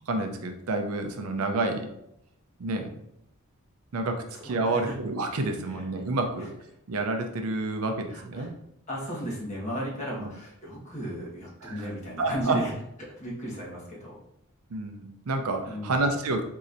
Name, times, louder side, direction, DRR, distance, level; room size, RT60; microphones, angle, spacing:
voice 1, 0.1-1.9 2.6-3.0 3.9-6.5 6.9-8.5 10.2-10.3 11.6-11.8 12.2-12.6 14.7-16.4, right 2 dB, 75° right, 5 dB, 0.5 m, -29 dB
voice 2, 4.3-5.0 5.7-6.1 6.4-6.5 8.1-8.5 8.9-12.7 13.0-14.2 15.6-16.0, equal, 30° left, -6 dB, 1.3 m, -35 dB
4.1 x 2.8 x 2.5 m, 0.78 s
head